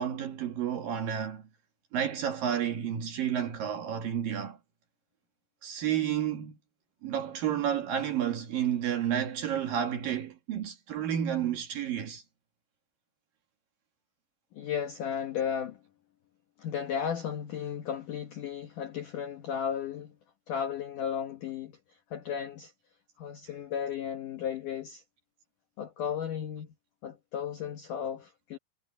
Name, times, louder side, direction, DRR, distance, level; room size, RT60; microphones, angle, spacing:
voice 1, 0.0-1.4 1.9-4.6 5.6-6.6 7.0-12.2, right 9 dB, 60° right, 2.6 m, -31 dB
voice 2, 14.5-15.8 16.6-20.2 20.5-22.7 23.2-25.0 25.8-26.7 27.0-28.6, left 8 dB, 85° left, 1.8 m, -34 dB
omnidirectional pair, 5.7 m